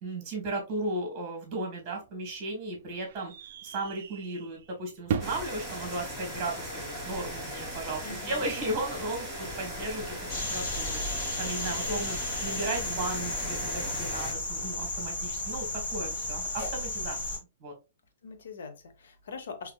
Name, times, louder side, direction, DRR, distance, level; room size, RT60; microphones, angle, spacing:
voice 1, 0.0-3.3 3.6-10.0 10.4-11.0 11.4-12.2 12.4-17.7, right 2 dB, 20° right, 1.4 m, -35 dB
sound 1, 1.8-7.8, right 7 dB, 40° right, 0.4 m, -40 dB
sound 2, 5.2-14.3, equal, 5° left, 1.0 m, -38 dB
voice 2, 8.0-8.5 11.8-12.0 12.8-13.0 18.2-19.7, left 5 dB, 70° left, 0.8 m, -43 dB
sound 3, 10.3-17.4, left 2 dB, 40° left, 1.4 m, -34 dB
3.9 x 2.8 x 2.3 m
hypercardioid pair, 170°, 0 cm